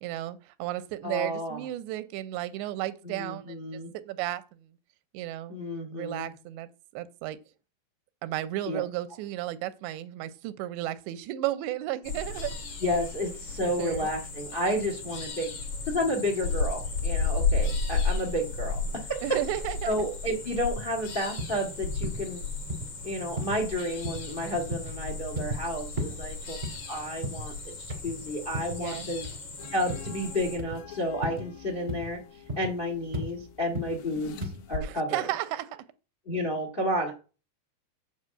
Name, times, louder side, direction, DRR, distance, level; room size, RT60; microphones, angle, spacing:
voice 1, 0.0-4.7 5.1-5.6 5.9-7.4 8.2-12.5 13.6-14.1 19.2-20.0 26.0-26.2 28.8-29.1 34.8-35.8, right 14 dB, 90° right, 3.0 m, -34 dB
voice 2, 1.0-1.6 3.0-3.9 5.5-6.3 8.6-8.8 12.8-15.5 15.9-19.2 19.8-22.4 23.0-26.6 26.9-27.7 28.0-29.2 29.7-32.2 32.6-35.3 36.2-37.1, equal, 90° left, 0.4 m, -31 dB
sound 1, 12.0-30.6, left 4 dB, 55° left, 2.9 m, -34 dB
sound 2, 20.8-20.9 21.4-21.6 22.0-22.2 22.7-22.9 23.4-23.6 24.0-24.3 24.7-24.9 25.3-25.6 26.0-26.2 26.6-27.5 27.9-28.2 28.5-28.8 29.2-29.5 29.9-30.1 30.6-30.8 31.2-31.5 31.9-32.1 32.5-32.7 33.1-33.3 33.7-34.0 34.4-34.6, equal, 25° right, 0.9 m, -35 dB
sound 3, 29.6-34.8, left 7 dB, 75° left, 3.2 m, -45 dB
8.6 x 5.2 x 7.6 m
omnidirectional pair, 4.9 m